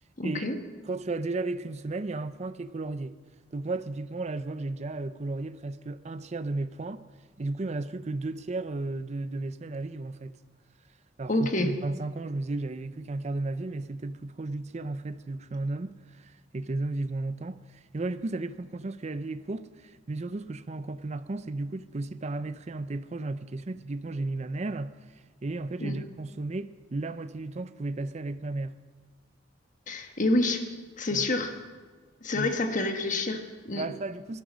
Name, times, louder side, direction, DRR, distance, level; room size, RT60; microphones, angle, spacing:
voice 1, 0.2-0.6 11.3-11.7 25.8-25.9 29.9-30.6 31.0-31.5 32.2-33.8, left 2 dB, 45° left, 1.5 m, -27 dB
voice 2, 0.8-3.2 3.5-7.0 7.4-10.4 11.2-28.8 31.1-31.3 32.3-32.6 33.7-34.4, right 2 dB, 35° right, 0.5 m, -34 dB
17.5 x 11.5 x 6.3 m
head